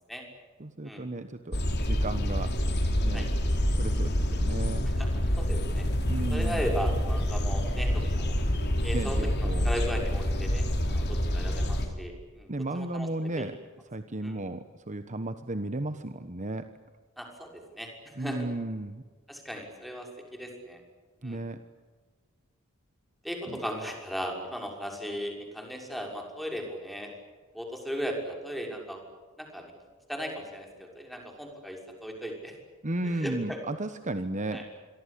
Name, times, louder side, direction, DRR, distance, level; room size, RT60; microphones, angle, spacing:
voice 1, 0.6-2.5 3.0-3.2 3.7-4.9 6.1-6.7 8.9-9.7 12.5-13.6 13.9-16.7 18.2-19.0 21.2-21.6 23.5-23.6 32.8-34.6, right 2 dB, 35° right, 10 dB, 1.2 m, -34 dB
sound 1, 1.5-11.9, equal, 50° left, 4.4 m, -27 dB
voice 2, 5.4-5.9 6.3-8.4 8.8-13.5 14.2-14.4 17.2-18.4 19.3-20.8 21.2-21.4 23.2-27.1 27.5-29.0 29.4-29.7 30.1-32.5 33.0-33.6 34.5-34.7, equal, ahead, 2 dB, 6.3 m, -37 dB
27.0 x 23.5 x 8.6 m, 1.4 s
head